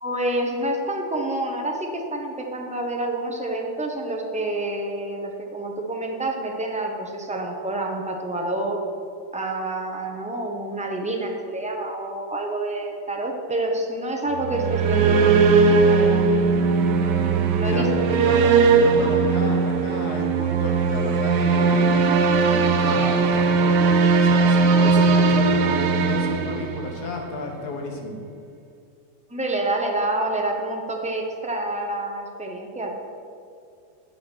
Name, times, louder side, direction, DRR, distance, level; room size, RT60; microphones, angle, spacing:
voice 1, 0.0-8.8 9.3-15.3 15.9-16.2 17.5-17.9 19.0-19.2 29.3-33.0, right 1 dB, 10° right, 1 dB, 0.5 m, -28 dB
sound 1, 14.4-27.2, right 4 dB, 90° right, 1.4 m, -19 dB
voice 2, 17.6-21.9 22.4-28.2, left 2 dB, 70° left, 2 dB, 1.8 m, -32 dB
10.5 x 5.1 x 6.2 m, 2.4 s
omnidirectional pair, 1.8 m